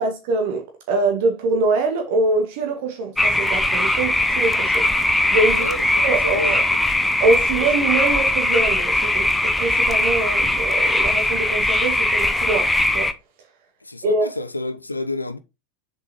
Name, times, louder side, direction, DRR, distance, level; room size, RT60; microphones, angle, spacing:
voice 1, 0.0-4.9 5.3-5.7 6.0-6.7 7.2-13.1 14.0-14.3, right 3 dB, 50° right, 1.9 m, -23 dB
sound 1, 3.2-13.1, left 1 dB, 5° left, 0.8 m, -20 dB
voice 2, 5.5-6.9 13.9-15.4, left 2 dB, 85° left, 0.8 m, -30 dB
7.3 x 5.3 x 4.6 m
figure-of-eight pair, 90°, 0 cm